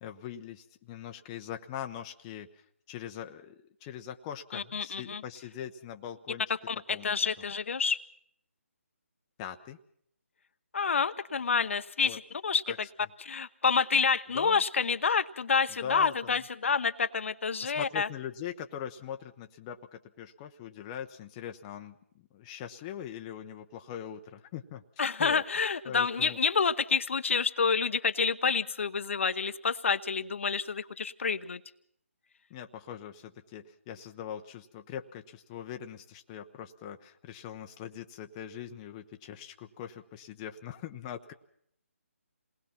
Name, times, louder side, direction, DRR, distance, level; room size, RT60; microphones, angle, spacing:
voice 1, 0.0-6.5 6.9-7.1 9.4-9.8 12.0-12.2 12.7-12.8 14.3-14.6 15.8-16.4 17.6-24.8 25.2-25.4 25.8-26.4 32.5-41.3, left 9 dB, 20° left, 5 dB, 0.9 m, -42 dB
voice 2, 4.5-5.2 6.7-8.0 10.7-12.6 13.2-18.1 25.0-31.6, left 5 dB, 60° left, 10 dB, 1.0 m, -28 dB
28.0 x 19.5 x 5.9 m, 0.70 s
figure-of-eight pair, 155°, 8 cm